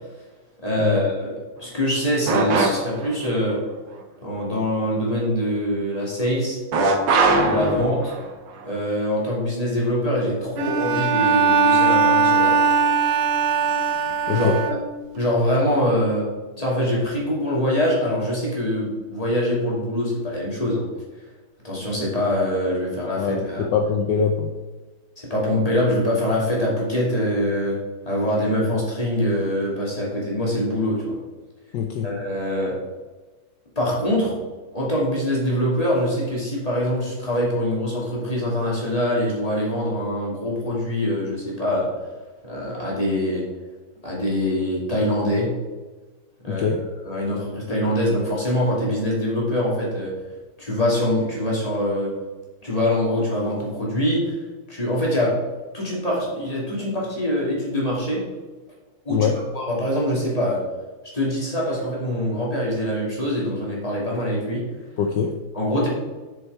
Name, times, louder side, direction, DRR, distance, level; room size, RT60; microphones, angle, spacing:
voice 1, 0.6-3.6 4.2-6.6 7.3-8.1 8.6-12.6 14.2-14.5 15.1-16.3 16.6-20.8 21.6-23.7 25.2-27.8 28.1-31.2 32.0-32.8 33.8-34.3 34.7-41.9 42.4-43.4 44.0-45.5 46.4-46.8 47.0-50.1 50.6-52.1 52.6-54.3 54.7-55.3 55.7-58.2 59.0-60.6 61.1-64.6 65.5-65.9, equal, 15° left, -5 dB, 2.6 m, -24 dB
sound 1, 2.3-3.1 6.7-8.3, right 3 dB, 65° right, 1.7 m, -20 dB
Bowed string instrument, 10.6-15.2, right 5 dB, 80° right, 1.7 m, -20 dB
voice 2, 23.2-24.5 31.7-32.1 46.5-46.8 59.1-59.4 65.0-65.4, left 6 dB, 65° left, 3 dB, 1.2 m, -23 dB
7.2 x 6.7 x 4.7 m, 1.2 s
omnidirectional pair, 2.3 m